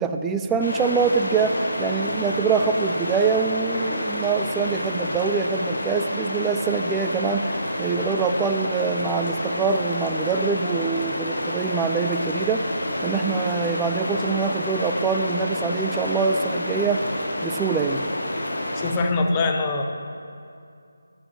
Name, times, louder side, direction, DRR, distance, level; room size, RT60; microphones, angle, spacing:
voice 1, 0.0-12.7 13.0-17.1 17.4-18.1, right 5 dB, 10° right, 6 dB, 0.4 m, -24 dB
sound 1, 0.6-18.9, left 1 dB, 60° left, 1.9 m, -29 dB
voice 2, 18.7-19.8, left 3 dB, 20° left, 3 dB, 0.8 m, -23 dB
13.0 x 11.0 x 3.1 m, 2.4 s
figure-of-eight pair, 160°, 0 cm